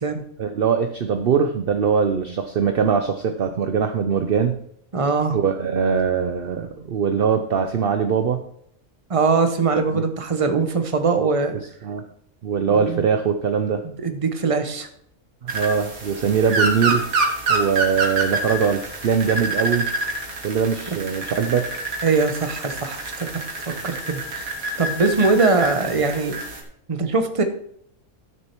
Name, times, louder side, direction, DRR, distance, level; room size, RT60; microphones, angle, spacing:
voice 1, 0.4-4.6 5.3-8.4 9.9-10.0 11.2-11.3 11.8-12.0 12.4-13.8 15.4-17.1 17.5-19.9 20.4-21.7, right 6 dB, 50° right, 7 dB, 0.8 m, -22 dB
voice 2, 4.9-5.4 9.1-11.5 12.8-13.0 13.8-14.9 22.0-23.3 23.6-24.5 24.8-26.4 26.9-27.4, right 4 dB, 25° right, 7 dB, 0.9 m, -21 dB
sound 1, 15.5-26.6, right 2 dB, 75° right, 2.1 m, -27 dB
12.0 x 6.5 x 4.5 m, 0.67 s
omnidirectional pair, 1.5 m